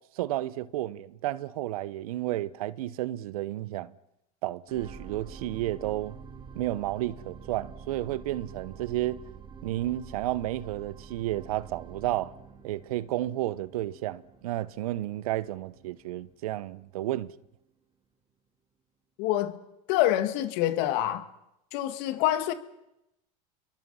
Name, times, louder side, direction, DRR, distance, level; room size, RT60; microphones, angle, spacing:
voice 1, 0.1-3.9 4.4-6.2 6.5-9.2 9.6-12.3 12.6-17.3, right 15 dB, 80° right, 0.9 m, -32 dB
sound 1, 4.7-17.1 17.6-17.7, right 6 dB, 25° right, 3.1 m, -48 dB
voice 2, 19.2-19.6 19.9-21.3 21.7-22.5, left 13 dB, 65° left, 2.0 m, -26 dB
29.5 x 22.5 x 5.6 m
supercardioid pair, 105°, 18 cm